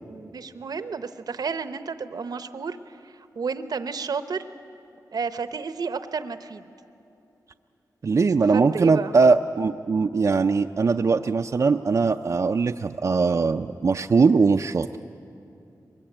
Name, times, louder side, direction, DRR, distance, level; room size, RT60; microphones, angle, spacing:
voice 1, 0.1-4.5 5.1-6.6 8.5-9.1, right 5 dB, 70° right, 11 dB, 0.8 m, -32 dB
voice 2, 8.0-14.9, right 4 dB, 50° right, 5 dB, 0.5 m, -21 dB
23.0 x 21.0 x 8.9 m, 2.7 s
wide cardioid pair, 90°, 7 cm